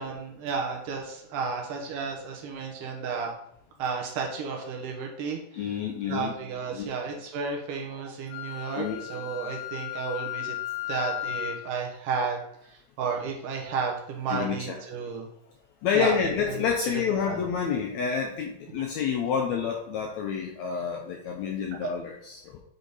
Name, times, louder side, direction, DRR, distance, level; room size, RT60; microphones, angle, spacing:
voice 1, 0.0-3.3 3.8-5.6 6.1-10.6 10.9-12.4 12.7-15.3 15.9-17.4 21.7-21.9, right 5 dB, 75° right, 1 dB, 2.5 m, -33 dB
voice 2, 5.5-6.3 6.7-6.9 8.7-9.0 14.3-14.8 15.8-22.6, left 7 dB, 80° left, 1 dB, 1.6 m, -28 dB
Wind instrument woodwind instrument, 8.3-11.7, left 15 dB, 65° left, 1.5 m, -35 dB
8.1 x 3.7 x 4.0 m, 0.74 s
omnidirectional pair, 3.9 m